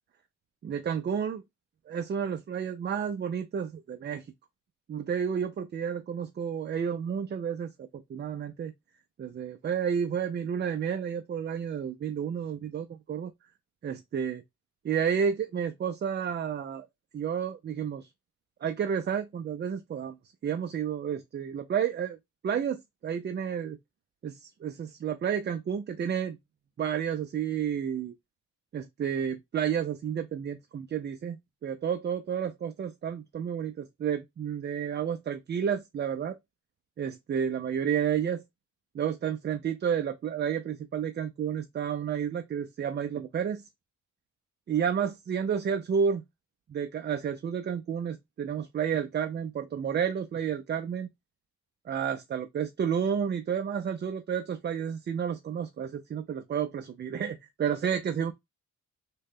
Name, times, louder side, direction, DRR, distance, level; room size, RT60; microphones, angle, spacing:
voice 1, 0.6-1.4 1.9-4.3 4.9-8.7 9.2-13.3 13.8-14.4 14.8-16.9 17.1-18.1 18.6-20.1 20.4-22.2 22.4-23.8 24.2-26.4 26.8-28.1 28.7-36.4 37.0-38.4 38.9-43.6 44.7-46.2 46.7-51.1 51.9-58.3, right 7 dB, 35° right, 0.4 m, -31 dB
3.6 x 2.2 x 3.5 m
cardioid pair, 105°, 32 cm